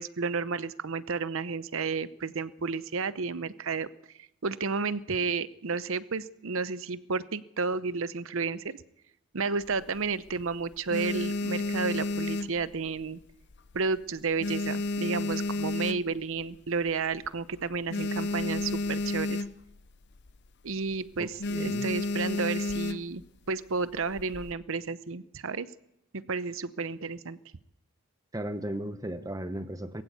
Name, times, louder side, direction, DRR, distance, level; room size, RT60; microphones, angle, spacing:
voice 1, 0.0-3.9 4.2-8.8 9.3-13.2 13.7-19.4 20.6-23.2 23.5-25.7 26.1-27.4, right 4 dB, 60° right, 15 dB, 0.8 m, -32 dB
sound 1, 9.6-10.3 10.7-13.2 13.5-13.9 14.2-16.4 16.9-17.0 17.2-17.3 17.6-19.8 20.1-20.4 20.7-21.0 21.4-23.2 24.0-24.5, left 2 dB, 50° left, 0.7 m, -31 dB
voice 2, 21.2-21.9 28.3-30.0, right 1 dB, 15° right, 10 dB, 0.9 m, -36 dB
21.0 x 15.5 x 8.3 m, 0.84 s
head